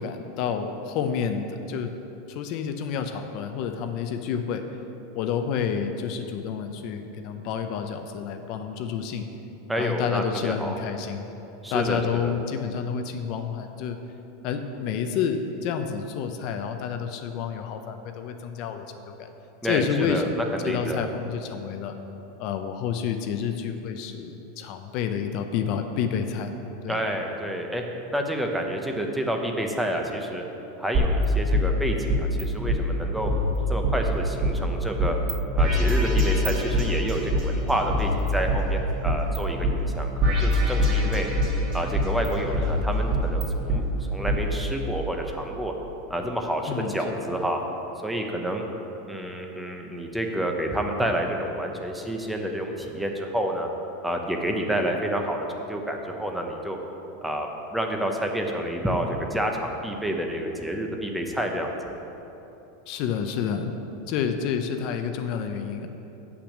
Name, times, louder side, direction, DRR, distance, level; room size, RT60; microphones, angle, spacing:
voice 1, 0.0-1.9 2.3-4.6 5.1-9.3 9.8-11.3 11.7-14.0 14.4-19.3 19.6-22.0 22.4-26.6 26.8-27.0 46.7-47.2 62.9-63.7 64.1-65.9, left 7 dB, 45° left, 7 dB, 0.6 m, -29 dB
voice 2, 9.7-10.8 11.6-12.4 19.6-21.1 26.9-27.8 28.1-30.4 30.8-33.3 33.7-35.2 35.6-41.3 41.7-45.7 46.1-47.6 48.0-48.6 49.1-53.7 54.0-56.8 57.2-62.0, right 1 dB, 5° right, 2 dB, 0.7 m, -29 dB
sound 1, 30.9-32.4 32.7-32.8 33.3-34.5 35.0-35.3 35.6-37.4 37.9-39.4 39.6-39.7 40.2-41.6 41.9-43.8 44.3-44.4, equal, 40° right, 2.3 m, -23 dB
8.2 x 6.0 x 7.3 m, 3.0 s
supercardioid pair, 155°, 0 cm